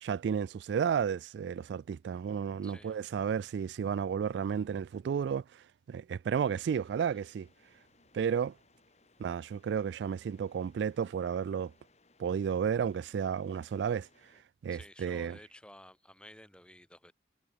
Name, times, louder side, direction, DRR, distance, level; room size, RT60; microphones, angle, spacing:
voice 1, 0.0-7.5 8.1-8.5 9.2-11.7 12.2-14.1 14.6-15.4, right 7 dB, 80° right, 0.3 m, -32 dB
voice 2, 2.6-3.0 14.7-17.1, left 1 dB, 5° left, 6.9 m, -53 dB
sound 1, 6.4-14.4, left 3 dB, 40° left, 7.0 m, -67 dB
head